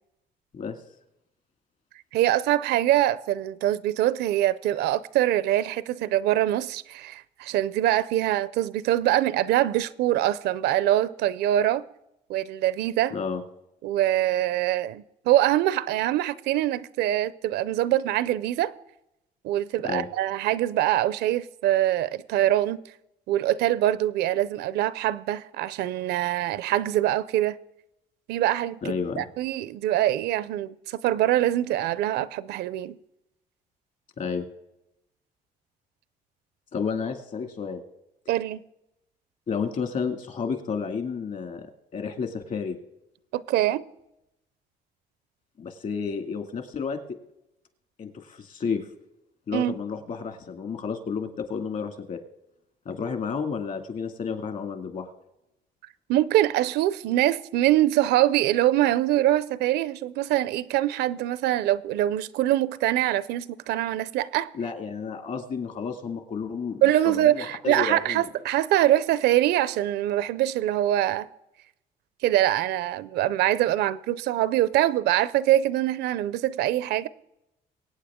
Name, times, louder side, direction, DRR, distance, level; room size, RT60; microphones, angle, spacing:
voice 1, 2.1-11.8 12.3-13.2 13.8-18.7 19.4-22.8 23.3-27.6 28.3-28.8 29.2-32.9 38.3-38.6 43.3-43.8 49.5-49.8 56.1-64.5 66.8-71.3 72.2-77.1, right 13 dB, 80° right, 0.5 m, -24 dB
voice 2, 13.1-13.4 19.8-20.1 28.8-29.2 34.2-34.5 36.7-37.8 39.5-42.8 45.6-47.0 48.0-48.8 49.5-52.2 52.9-55.1 64.5-68.2, left 5 dB, 50° left, 2.1 m, -31 dB
23.0 x 8.9 x 3.6 m
cardioid pair, 110°, 17 cm